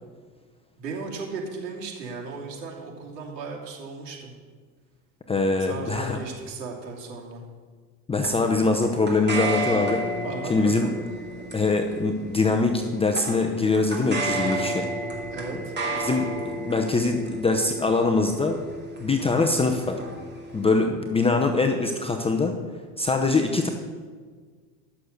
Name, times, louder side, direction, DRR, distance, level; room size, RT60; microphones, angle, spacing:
voice 1, 0.8-4.3 5.6-7.4 10.2-10.9 15.3-15.7, right 4 dB, 85° right, -1 dB, 2.8 m, -36 dB
voice 2, 5.3-6.2 8.1-10.0 10.5-10.9 11.5-14.9 16.0-18.6 19.0-20.0 20.5-22.5 23.0-23.7, left 3 dB, 10° left, 3 dB, 0.7 m, -23 dB
sound 1, 8.2-20.8, right 1 dB, 20° right, 2.4 m, -32 dB
11.5 x 6.8 x 6.5 m, 1.5 s
supercardioid pair, 105°, 48 cm